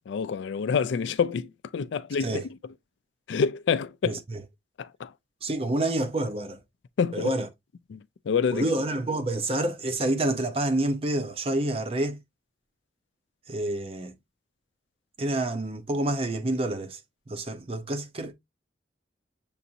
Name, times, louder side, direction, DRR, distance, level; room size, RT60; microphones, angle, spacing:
voice 1, 0.0-2.4 3.3-4.2 4.8-5.1 7.0-7.3 7.9-8.7, left 6 dB, 75° left, 0.4 m, -27 dB
voice 2, 4.0-4.4 5.4-6.6 7.1-7.5 8.5-12.2 13.5-14.1 15.2-17.0 17.3-18.3, right 1 dB, 30° right, 0.6 m, -28 dB
6.9 x 2.6 x 2.7 m
head